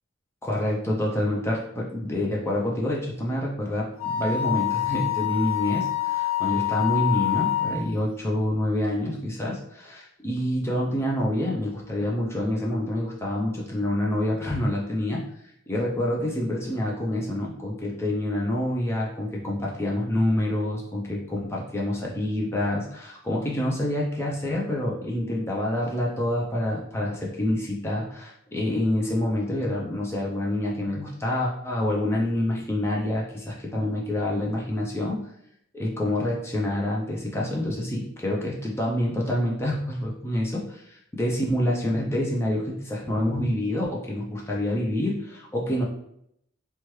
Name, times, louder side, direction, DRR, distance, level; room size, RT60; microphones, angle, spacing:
voice 1, 0.4-15.2 15.7-35.3 35.7-45.8, left 1 dB, 15° left, -2 dB, 0.4 m, -27 dB
Wind instrument woodwind instrument, 4.0-7.8, left 12 dB, 80° left, 0.9 m, -26 dB
3.0 x 2.2 x 3.0 m, 0.73 s
head